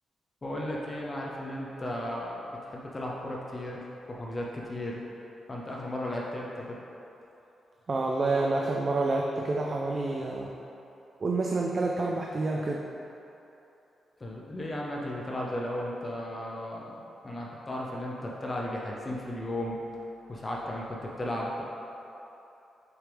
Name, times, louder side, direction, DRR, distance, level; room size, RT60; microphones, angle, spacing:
voice 1, 0.4-5.0 5.5-6.8 14.2-16.9 17.2-19.8 20.3-21.6, left 1 dB, 25° left, -3 dB, 0.6 m, -35 dB
voice 2, 7.9-10.5 11.2-12.9, right 2 dB, 40° right, -1 dB, 0.4 m, -28 dB
6.3 x 4.9 x 3.4 m, 2.9 s
cardioid pair, 110°, 0 cm